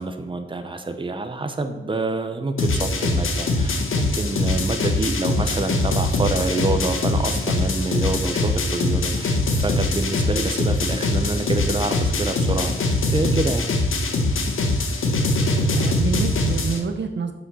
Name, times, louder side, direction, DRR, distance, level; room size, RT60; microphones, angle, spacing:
voice 1, 0.0-13.7, right 2 dB, 25° right, 6 dB, 1.0 m, -27 dB
sound 1, 2.6-16.8, left 2 dB, 85° left, 1.3 m, -22 dB
voice 2, 15.5-17.3, right 5 dB, 60° right, 6 dB, 0.9 m, -28 dB
7.5 x 6.5 x 6.3 m, 1.1 s
wide cardioid pair, 100°, 20 cm